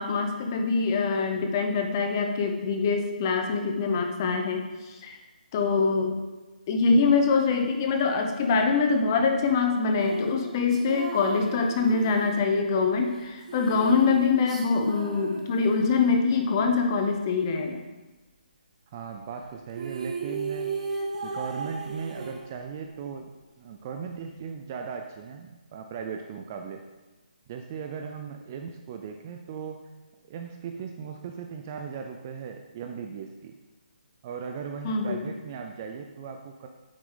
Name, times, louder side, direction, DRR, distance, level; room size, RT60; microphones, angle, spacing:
voice 1, 0.0-5.2 5.5-6.2 6.7-17.8 34.8-35.2, left 4 dB, 20° left, 4 dB, 0.8 m, -24 dB
sound 1, 10.0-16.1 19.4-19.5 19.7-22.9, right 4 dB, 45° right, 1.6 m, -36 dB
voice 2, 18.9-20.7 21.2-23.3 23.6-26.8 27.5-29.8 30.3-33.6 34.2-36.7, right 6 dB, 20° right, 4 dB, 0.4 m, -37 dB
9.5 x 7.6 x 3.8 m, 1.2 s
hypercardioid pair, 170°, 5 cm